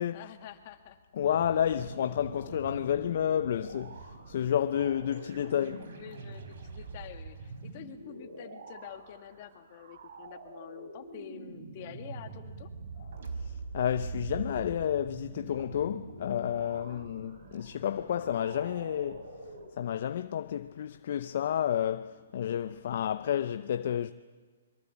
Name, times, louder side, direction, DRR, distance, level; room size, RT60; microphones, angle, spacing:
voice 1, 0.1-1.0 1.8-1.9 5.9-12.7 16.9-17.1, left 11 dB, 40° left, 2.2 m, -48 dB
voice 2, 1.2-5.9 13.4-19.3 19.8-24.1, left 9 dB, 55° left, 0.7 m, -30 dB
sound 1, 1.2-19.7, right 4 dB, 65° right, 4.4 m, -44 dB
25.0 x 23.0 x 8.5 m
hypercardioid pair, 150°, 0 cm